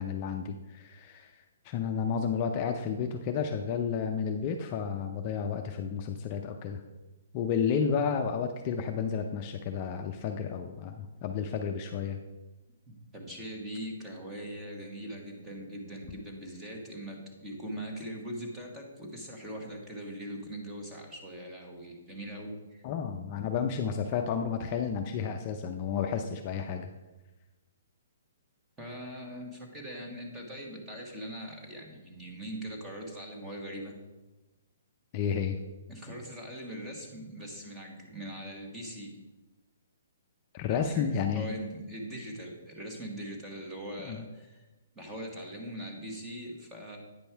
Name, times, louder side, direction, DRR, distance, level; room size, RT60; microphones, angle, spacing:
voice 1, 0.0-1.3 1.6-6.8 7.3-12.2 22.8-26.9 35.1-35.6 40.5-41.5 44.0-44.2, left 7 dB, 30° left, 4 dB, 0.5 m, -31 dB
voice 2, 12.9-22.8 28.8-33.9 35.9-39.1 40.7-44.7 44.9-47.0, equal, 10° right, 0 dB, 1.3 m, -41 dB
9.2 x 5.3 x 4.5 m, 1.1 s
hypercardioid pair, 160°, 0 cm